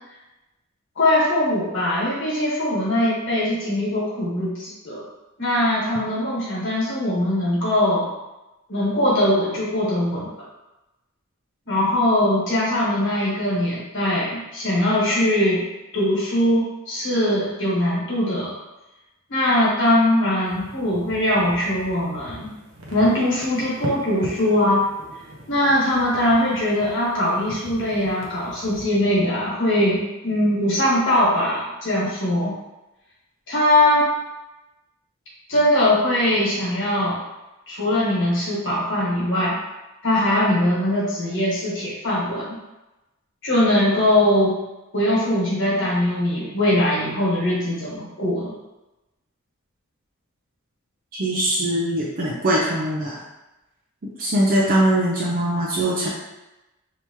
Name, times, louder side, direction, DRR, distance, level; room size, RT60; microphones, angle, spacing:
voice 1, 0.9-5.0 5.4-8.1 8.7-10.3 11.7-15.6 15.9-18.5 19.3-22.5 22.9-24.9 25.5-32.5 33.5-34.1 35.5-37.2 37.7-39.5 40.0-42.6 43.4-44.6 44.9-48.5, left 1 dB, 60° left, -6 dB, 1.4 m, -21 dB
sound 1, 20.5-28.8, equal, 75° right, 0.8 m, -40 dB
voice 2, 51.1-53.2 54.2-56.1, right 1 dB, 40° right, -4 dB, 0.5 m, -21 dB
3.4 x 2.8 x 3.0 m, 1.0 s
head